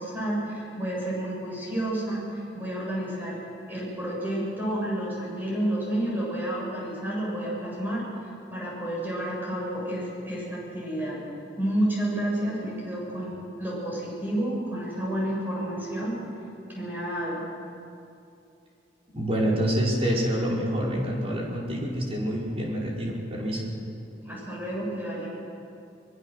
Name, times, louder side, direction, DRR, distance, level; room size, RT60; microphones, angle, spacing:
voice 1, 0.0-3.4 3.7-8.0 8.5-11.2 11.6-16.2 16.7-17.4 24.2-25.3, right 1 dB, 10° right, -6 dB, 7.6 m, -30 dB
voice 2, 19.1-23.6, equal, 35° right, -3 dB, 5.2 m, -27 dB
24.0 x 23.0 x 6.6 m, 2.6 s
head